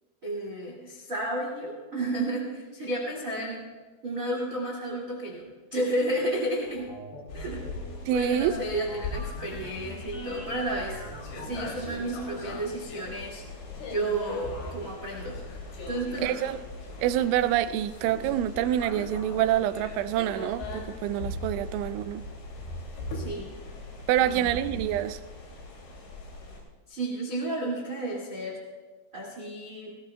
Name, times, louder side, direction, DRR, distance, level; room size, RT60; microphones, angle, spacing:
voice 1, 0.2-3.7 4.0-6.9 7.3-7.6 8.1-11.0 11.3-13.4 13.9-15.4 15.9-16.5 23.1-23.5 24.2-24.5 26.9-28.6 29.1-30.0, right 1 dB, 40° right, -1 dB, 1.2 m, -32 dB
sound 1, 6.7-12.7, equal, 35° left, 4.6 m, -42 dB
sound 2, 7.3-26.6, left 2 dB, 85° left, 5.1 m, -40 dB
voice 2, 8.1-8.5 16.2-16.6 17.0-22.2 24.1-25.2, right 12 dB, 85° right, 12 dB, 3.0 m, -26 dB
19.5 x 18.0 x 2.2 m, 1.3 s
omnidirectional pair, 5.4 m